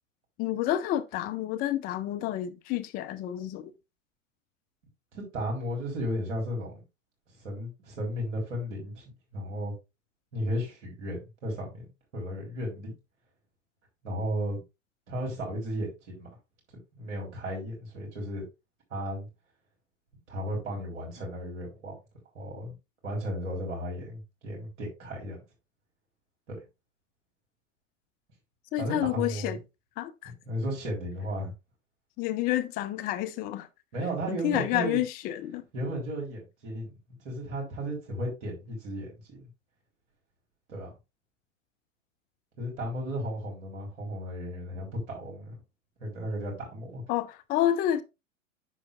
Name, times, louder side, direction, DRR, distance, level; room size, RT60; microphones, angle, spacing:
voice 1, 0.4-3.7 28.7-29.6 30.0-30.3 32.2-33.7 34.3-35.6 47.1-48.0, left 12 dB, 25° left, 0.5 m, -29 dB
voice 2, 5.1-6.8 7.4-9.0 9.3-9.7 10.3-11.9 12.1-12.9 14.0-14.6 15.1-16.3 17.0-18.4 18.9-19.3 20.3-22.0 22.3-22.7 23.0-25.4 26.5-26.6 28.8-29.5 30.2-31.5 33.9-35.0 35.7-39.5 40.7-40.9 42.6-45.6 46.0-47.0, equal, 60° right, 4.0 m, -34 dB
9.9 x 6.4 x 2.4 m
figure-of-eight pair, 95°, 39 cm